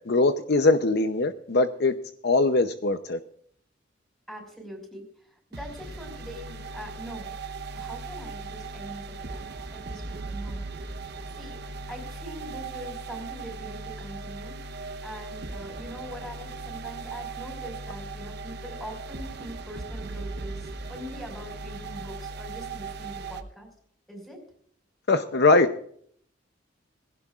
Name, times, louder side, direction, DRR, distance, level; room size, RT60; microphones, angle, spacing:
voice 1, 0.1-1.9 2.2-3.2 25.1-25.7, left 3 dB, 60° left, 9 dB, 0.7 m, -21 dB
voice 2, 4.3-7.4 7.7-10.9 11.3-14.6 15.0-23.7 24.1-24.4, equal, ahead, 2 dB, 4.9 m, -42 dB
sound 1, 5.5-23.4, right 3 dB, 60° right, 1.0 m, -38 dB
19.0 x 16.5 x 2.4 m, 0.62 s
head